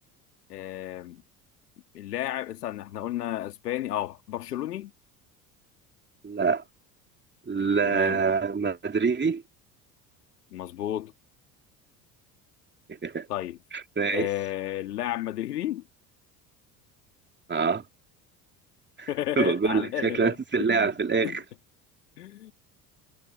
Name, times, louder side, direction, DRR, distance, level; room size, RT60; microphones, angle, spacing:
voice 1, 0.5-1.2 1.9-4.9 7.9-8.2 10.5-11.1 13.3-13.6 14.1-15.8 19.1-20.9 21.2-21.4 22.2-22.5, left 13 dB, 80° left, 2.7 m, -32 dB
voice 2, 6.2-6.6 7.5-9.4 13.0-13.3 13.7-14.3 17.5-17.8 19.0-19.1 19.4-21.4, right 5 dB, 25° right, 2.8 m, -25 dB
hypercardioid pair, 65°, 46 cm